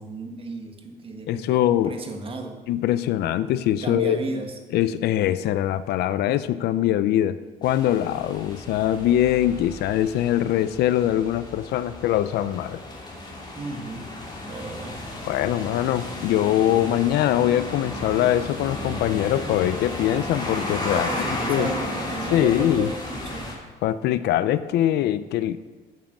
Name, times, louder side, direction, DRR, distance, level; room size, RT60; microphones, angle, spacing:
voice 1, 0.0-2.6 3.8-4.6 13.5-14.1 14.5-15.0 20.9-23.5, right 2 dB, 35° right, 4 dB, 1.6 m, -33 dB
voice 2, 1.3-2.0 2.7-4.2 4.7-12.8 15.3-21.1 21.5-21.7 22.3-22.9 23.8-25.6, left 12 dB, 75° left, 14 dB, 0.5 m, -22 dB
sound 1, 7.6-23.5, left 1 dB, 25° left, 2.7 m, -34 dB
9.0 x 7.5 x 6.1 m, 1.3 s
cardioid pair, 110°, 17 cm